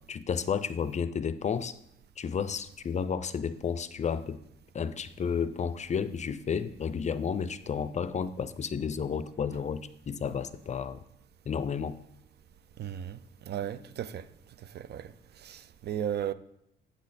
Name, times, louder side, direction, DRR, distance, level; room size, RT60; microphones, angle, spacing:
voice 1, 0.1-1.8 2.2-4.4 4.7-11.0 11.5-12.0, left 6 dB, 35° left, 0.5 m, -32 dB
voice 2, 12.8-14.3 14.6-16.3, right 10 dB, 55° right, 0.5 m, -36 dB
8.2 x 6.4 x 4.1 m
cardioid pair, 95°, 20 cm